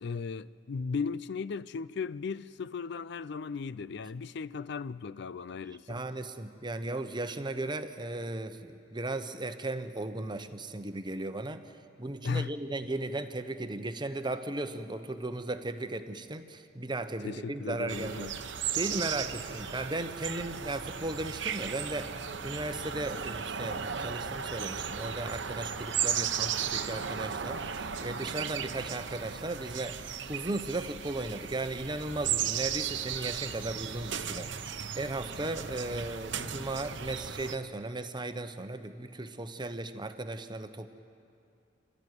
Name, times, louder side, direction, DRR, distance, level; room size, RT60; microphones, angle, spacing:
voice 1, 0.0-6.0 12.2-12.5 17.2-18.4, left 5 dB, 65° left, 0.4 m, -36 dB
voice 2, 5.9-11.6 12.0-18.3 18.7-34.7 34.9-40.9, right 2 dB, 25° right, 0.9 m, -36 dB
sound 1, 17.9-37.6, right 8 dB, 70° right, 0.9 m, -36 dB
27.5 x 13.5 x 9.6 m
head